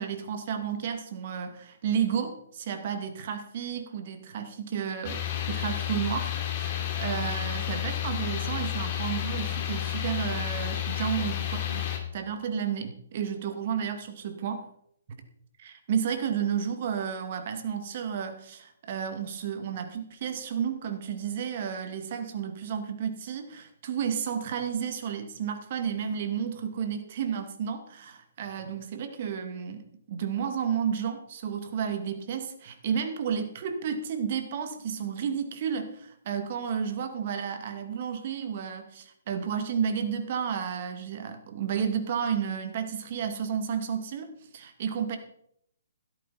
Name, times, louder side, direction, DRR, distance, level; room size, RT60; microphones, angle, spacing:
voice 1, 0.0-5.2 5.5-14.6 15.6-45.2, right 7 dB, 45° right, 7 dB, 2.4 m, -32 dB
sound 1, 5.0-12.0, left 11 dB, 40° left, 3.2 m, -31 dB
16.0 x 13.0 x 4.3 m, 0.71 s
figure-of-eight pair, 130°, 0 cm